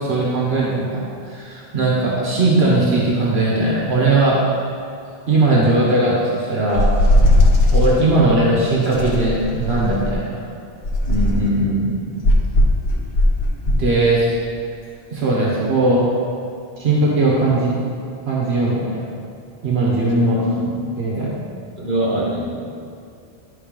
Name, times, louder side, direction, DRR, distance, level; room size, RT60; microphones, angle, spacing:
voice 1, 0.0-4.4 5.3-6.9 7.7-10.3 13.6-14.4 15.1-16.1 16.8-17.7 18.2-19.0 19.6-20.4 21.0-21.4, right 2 dB, 85° right, -5 dB, 1.6 m, -18 dB
sound 1, 6.8-8.0 8.9-10.2 10.8-11.5 12.2-13.9, left 1 dB, 85° left, 1.2 m, -16 dB
voice 2, 11.1-12.0 20.3-20.7 21.8-22.6, equal, 50° right, -7 dB, 2.1 m, -22 dB
10.5 x 4.1 x 5.3 m, 2.6 s
omnidirectional pair, 1.0 m